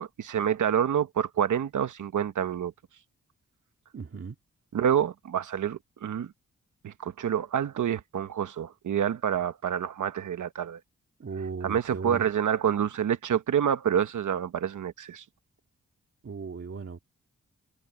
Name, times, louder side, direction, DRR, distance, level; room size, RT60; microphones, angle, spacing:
voice 1, 0.0-2.7 4.7-6.3 6.8-10.8 11.6-15.2, right 9 dB, 85° right, 1.1 m, -27 dB
voice 2, 3.9-4.4 11.2-12.3 16.2-17.0, right 5 dB, 50° right, 2.1 m, -37 dB
wide cardioid pair, 90°, 30 cm